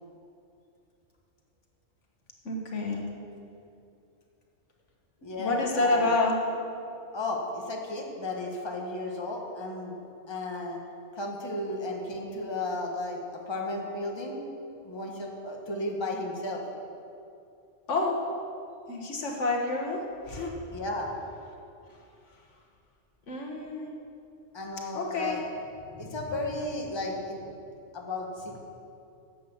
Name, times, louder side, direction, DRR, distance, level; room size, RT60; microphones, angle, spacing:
voice 1, 2.5-3.1 5.2-6.4 17.9-18.2 18.9-20.5 21.9-22.0 23.3-23.9 24.9-25.4, left 2 dB, 80° left, 0 dB, 1.8 m, -28 dB
voice 2, 5.2-6.2 7.1-10.0 10.3-10.8 11.1-14.4 14.8-16.6 20.7-21.1 24.5-25.4 25.9-27.4 27.9-28.6, left 2 dB, 25° left, 0 dB, 1.3 m, -34 dB
10.5 x 7.6 x 7.2 m, 2.6 s
omnidirectional pair, 1.2 m